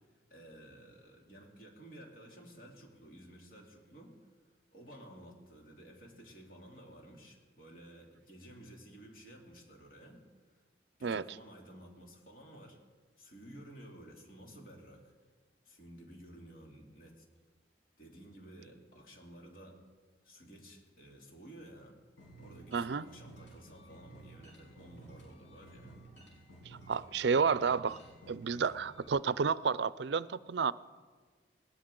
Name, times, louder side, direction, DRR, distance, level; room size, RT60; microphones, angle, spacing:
voice 1, 0.3-4.2 4.7-10.2 11.0-12.8 13.2-15.0 15.6-17.2 18.0-19.8 20.2-22.0 22.4-25.9, right 1 dB, 45° left, 2.8 m, -53 dB
sound 1, 22.2-29.1, right 1 dB, 90° left, 5.9 m, -54 dB
voice 2, 22.7-23.1 26.7-28.0 28.3-30.7, right 5 dB, 65° right, 0.4 m, -31 dB
19.5 x 19.0 x 3.8 m
head